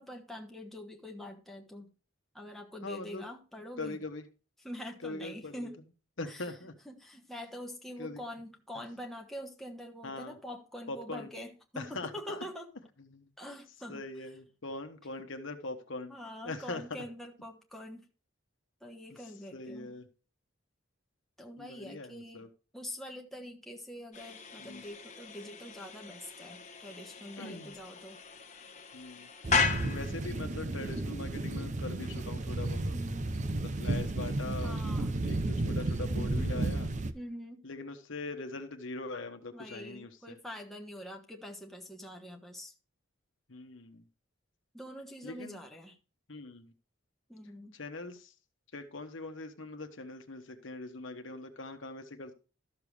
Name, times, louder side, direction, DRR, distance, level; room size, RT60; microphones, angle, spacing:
voice 1, 0.0-1.9 2.3-4.0 4.6-5.8 6.2-6.5 6.8-12.7 13.4-14.1 16.1-18.1 18.8-20.0 21.4-22.4 22.7-28.2 32.9-33.3 34.6-35.1 37.1-37.6 39.5-42.7 44.7-45.9 47.3-47.8, equal, ahead, 1 dB, 1.3 m, -45 dB
voice 2, 2.8-3.2 3.8-4.2 5.0-5.7 6.2-6.7 8.0-8.2 8.7-8.8 10.0-10.4 10.9-11.3 11.8-12.5 13.0-13.3 13.9-16.1 16.4-17.0 19.1-19.2 19.5-20.1 21.6-22.5 24.6-24.9 27.4-27.8 28.9-29.3 29.8-33.0 33.5-34.8 35.2-36.9 37.6-40.3 43.5-44.0 45.2-45.6 46.3-46.7 47.7-48.3 48.7-52.3, left 3 dB, 70° left, 6 dB, 1.2 m, -42 dB
sound 1, 24.1-30.3, left 5 dB, 35° left, 1.2 m, -36 dB
sound 2, 29.4-37.1, right 2 dB, 35° right, 0.6 m, -33 dB
13.0 x 6.9 x 3.3 m, 0.34 s
head